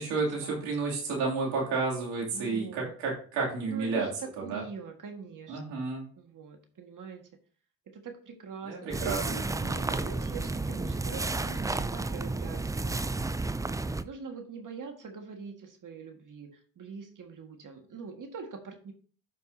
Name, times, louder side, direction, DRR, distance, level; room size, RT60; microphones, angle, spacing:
voice 1, 0.0-4.1 4.5-4.6 5.5-6.1 8.7-9.2 9.5-10.1, right 4 dB, 85° right, -3 dB, 2.7 m, -31 dB
voice 2, 2.3-3.0 3.6-5.8 6.2-7.3 7.9-13.4 14.0-18.9, right 5 dB, 50° right, 4 dB, 1.7 m, -43 dB
sound 1, 8.9-14.0, right 3 dB, 10° right, 0.4 m, -32 dB
12.0 x 5.2 x 2.7 m, 0.43 s
supercardioid pair, 55°, 41 cm